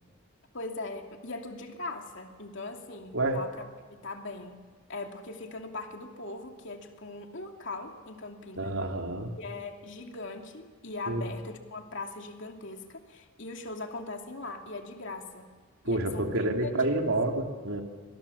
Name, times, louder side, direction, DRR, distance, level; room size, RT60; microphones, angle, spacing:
voice 1, 0.5-3.6 3.9-8.7 9.4-15.5 15.8-16.3 16.7-17.1, left 2 dB, 60° left, 3 dB, 2.8 m, -40 dB
voice 2, 8.5-9.3 11.1-11.2 15.8-17.8, right 2 dB, 70° right, 2 dB, 3.4 m, -28 dB
29.5 x 25.5 x 7.3 m, 1.5 s
head